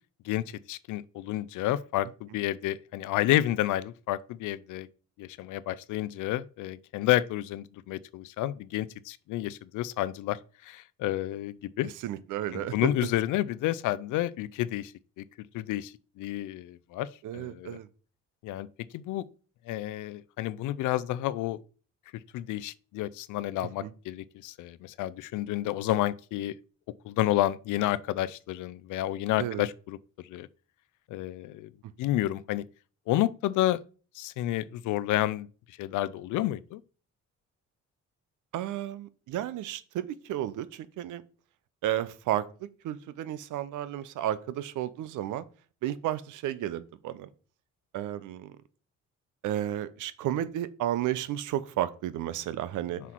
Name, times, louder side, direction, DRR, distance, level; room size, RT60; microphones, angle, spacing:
voice 1, 0.2-4.9 5.2-11.9 12.5-15.2 15.5-17.1 17.3-17.8 18.4-18.7 18.9-19.2 19.7-21.6 22.3-26.5 27.0-30.5 31.1-31.7 32.0-32.6 33.1-33.8 34.1-36.8, left 14 dB, 85° left, 0.5 m, -30 dB
voice 2, 12.0-12.9 17.2-17.9 23.6-23.9 29.4-29.6 38.5-41.2 41.8-45.4 45.8-47.3 47.9-48.6 49.4-53.0, right 12 dB, 85° right, 0.7 m, -32 dB
6.0 x 5.8 x 4.5 m
cardioid pair, 90°, 30 cm